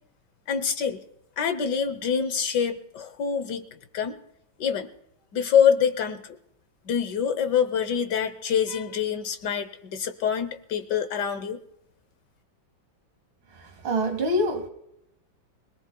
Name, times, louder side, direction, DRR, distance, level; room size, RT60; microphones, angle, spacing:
voice 1, 0.5-1.0 1.4-3.7 3.9-4.2 4.6-4.9 5.3-6.3 6.9-11.6, left 7 dB, 65° left, 1.5 m, -25 dB
voice 2, 13.8-14.7, equal, 75° right, 2.8 m, -24 dB
24.5 x 18.5 x 2.2 m
omnidirectional pair, 2.2 m